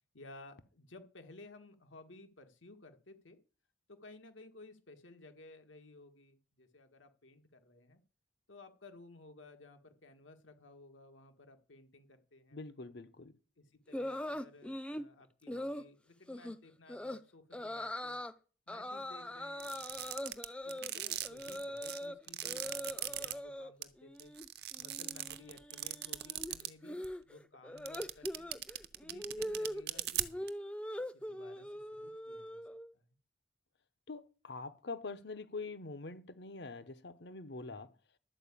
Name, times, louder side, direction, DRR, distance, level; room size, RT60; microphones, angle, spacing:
voice 1, 0.1-3.4 3.9-8.0 8.5-12.6 13.6-18.2 18.7-19.8 20.6-24.3 24.8-28.6 29.0-30.5 31.1-32.6 32.9-33.2 37.8-37.9, left 2 dB, 85° left, 1.7 m, -56 dB
voice 2, 12.5-13.4 34.1-37.9, left 3 dB, 60° left, 0.9 m, -44 dB
sound 1, 13.9-15.1 15.5-15.9 16.3-16.6 16.9-17.2 17.5-18.3 18.7-22.2 22.4-23.7 24.0-24.5 24.7-32.9, left 1 dB, 5° left, 0.5 m, -42 dB
sound 2, 19.6-23.3 23.8-23.9 24.2-26.7 27.0-27.1 27.8-30.5, right 13 dB, 55° right, 0.7 m, -38 dB
12.0 x 4.8 x 8.4 m
head